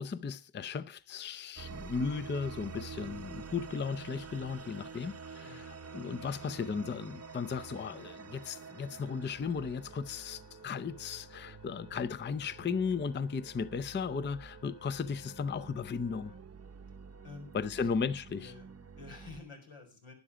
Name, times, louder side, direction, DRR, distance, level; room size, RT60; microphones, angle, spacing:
voice 1, 0.0-16.3 17.5-18.5, left 5 dB, 25° left, 0.5 m, -36 dB
sound 1, 1.6-19.4, right 6 dB, 30° right, 0.7 m, -49 dB
Wind instrument woodwind instrument, 3.1-16.5, left 5 dB, 60° left, 1.5 m, -58 dB
voice 2, 17.2-17.9 18.4-20.1, left 4 dB, 85° left, 4.6 m, -50 dB
12.5 x 10.0 x 5.0 m
wide cardioid pair, 95°, 48 cm